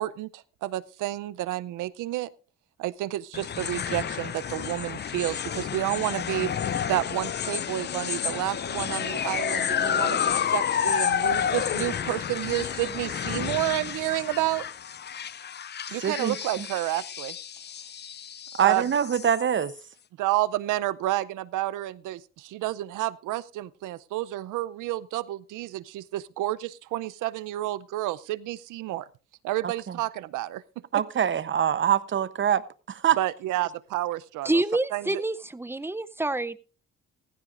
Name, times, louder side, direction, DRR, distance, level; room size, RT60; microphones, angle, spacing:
voice 1, 0.0-2.3 2.8-14.7 15.9-17.4 18.6-18.8 20.2-29.1 29.4-30.6 30.9-31.0 33.2-34.5 34.9-35.2, right 15 dB, 90° right, 0.6 m, -30 dB
sound 1, 3.3-19.8, left 8 dB, 35° left, 0.5 m, -30 dB
voice 2, 16.0-16.7 18.6-19.7 29.9-30.0 30.9-32.6 32.9-33.2, right 9 dB, 40° right, 0.8 m, -24 dB
voice 3, 34.4-36.6, right 2 dB, 10° right, 0.6 m, -27 dB
15.5 x 15.0 x 2.5 m
cardioid pair, 90°, 30 cm